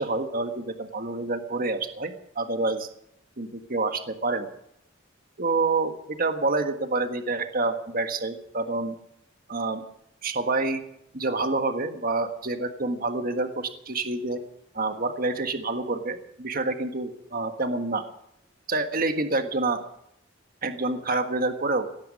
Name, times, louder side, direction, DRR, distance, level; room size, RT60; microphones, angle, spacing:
voice 1, 0.0-2.9 3.4-4.5 5.4-8.9 9.5-9.8 10.2-10.8 11.1-14.4 14.7-18.0 18.7-19.8 20.6-21.9, right 3 dB, 45° right, 7 dB, 1.6 m, -27 dB
17.5 x 13.5 x 5.4 m, 0.76 s
head